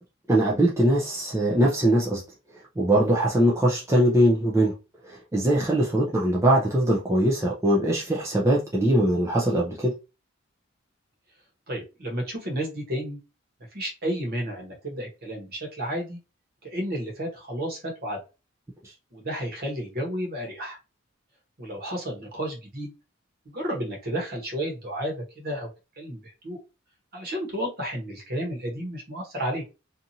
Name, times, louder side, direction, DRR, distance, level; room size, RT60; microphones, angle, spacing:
voice 1, 0.3-2.2 2.8-4.7 5.0-9.9, right 1 dB, 15° right, 0.4 m, -21 dB
voice 2, 11.7-13.2 13.7-16.2 16.6-18.2 19.1-20.8 21.6-22.9 23.4-25.7 26.0-26.6 27.1-29.6, equal, 45° right, 1.1 m, -32 dB
2.7 x 2.4 x 2.6 m
head